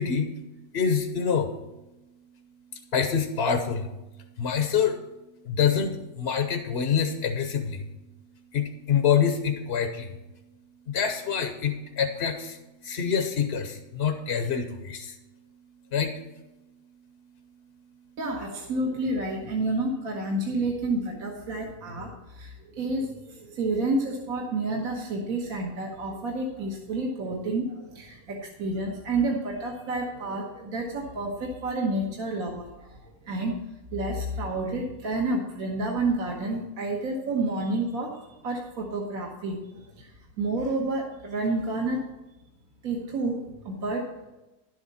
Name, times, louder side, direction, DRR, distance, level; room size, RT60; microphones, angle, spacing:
voice 1, 0.0-10.6 10.8-18.2, left 7 dB, 50° left, 6 dB, 0.9 m, -28 dB
voice 2, 18.2-33.6 33.9-42.1 42.8-44.3, right 2 dB, 60° right, -1 dB, 1.7 m, -30 dB
11.0 x 7.9 x 4.1 m, 1.0 s
omnidirectional pair, 1.7 m